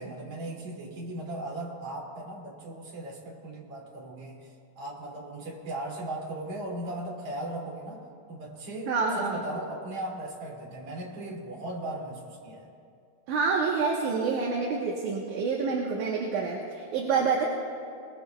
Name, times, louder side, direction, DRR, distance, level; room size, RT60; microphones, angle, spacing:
voice 1, 0.0-4.5 4.8-8.0 8.3-12.7, right 1 dB, 45° right, -3 dB, 3.4 m, -37 dB
voice 2, 8.9-9.4 13.3-17.5, right 5 dB, 65° right, -1 dB, 2.4 m, -27 dB
22.0 x 21.0 x 2.3 m, 2.3 s
omnidirectional pair, 4.2 m